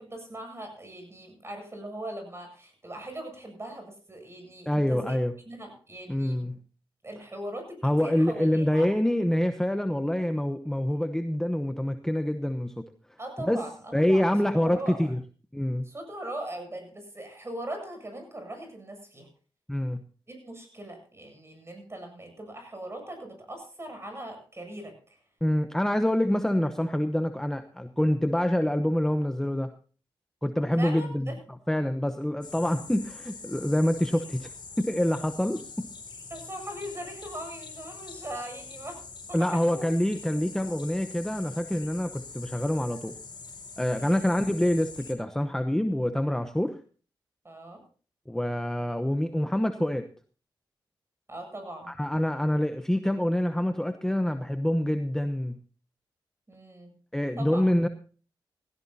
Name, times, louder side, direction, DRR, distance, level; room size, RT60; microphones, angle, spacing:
voice 1, 0.0-5.2 5.5-6.6 7.0-8.9 13.2-14.3 14.6-15.1 15.8-19.3 20.3-25.2 30.7-31.4 36.3-39.0 39.3-39.8 44.0-44.2 47.4-47.8 51.3-51.9 56.5-56.9 57.4-57.6, right 1 dB, 30° right, 5 dB, 7.7 m, -40 dB
voice 2, 4.7-5.3 6.1-6.6 7.8-12.8 13.4-13.6 13.9-15.2 15.5-15.9 19.7-20.0 25.4-29.7 30.4-31.4 31.7-34.5 34.8-35.8 39.3-43.1 43.8-46.8 48.3-50.0 51.9-55.6 57.1-57.9, left 1 dB, 5° left, 8 dB, 0.9 m, -26 dB
sound 1, 32.4-45.1, left 4 dB, 55° left, 4.0 m, -44 dB
17.0 x 16.0 x 2.7 m, 0.39 s
cardioid pair, 60°, 9 cm